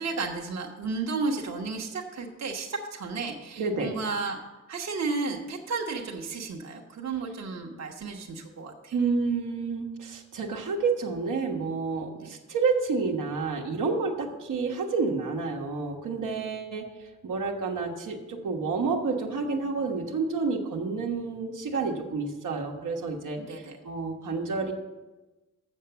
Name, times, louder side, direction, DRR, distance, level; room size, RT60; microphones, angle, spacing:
voice 1, 0.0-4.4 4.7-8.9 12.2-12.4 23.4-23.8, right 4 dB, 60° right, 0 dB, 1.1 m, -33 dB
voice 2, 3.6-4.0 8.9-16.9 17.2-24.7, right 4 dB, 85° right, 1 dB, 1.2 m, -29 dB
7.3 x 6.9 x 6.8 m, 1.1 s
wide cardioid pair, 135°, 31 cm